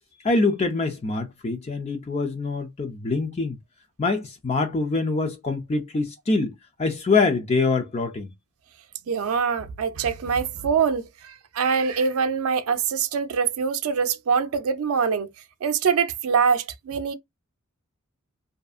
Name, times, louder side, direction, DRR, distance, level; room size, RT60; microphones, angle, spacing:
voice 1, 0.2-3.6 4.0-6.5 6.8-8.3, left 3 dB, 30° left, 0.4 m, -24 dB
voice 2, 9.1-15.3 15.6-17.1, right 6 dB, 80° right, 0.4 m, -24 dB
2.6 x 2.4 x 2.3 m
head